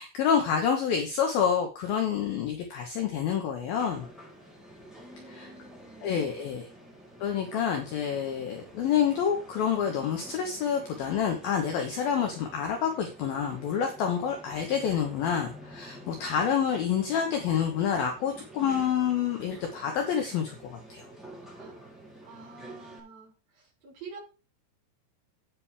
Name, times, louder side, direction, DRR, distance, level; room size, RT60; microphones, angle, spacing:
voice 1, 0.0-4.1 5.3-5.5 6.0-6.7 7.2-21.1, left 8 dB, 65° left, 3 dB, 2.8 m, -28 dB
sound 1, 3.7-23.0, right 1 dB, ahead, 2.5 m, -49 dB
voice 2, 4.9-6.3 21.5-21.8 22.2-24.2, right 4 dB, 50° right, 0 dB, 5.5 m, -48 dB
10.0 x 9.2 x 3.5 m, 0.31 s
omnidirectional pair, 5.1 m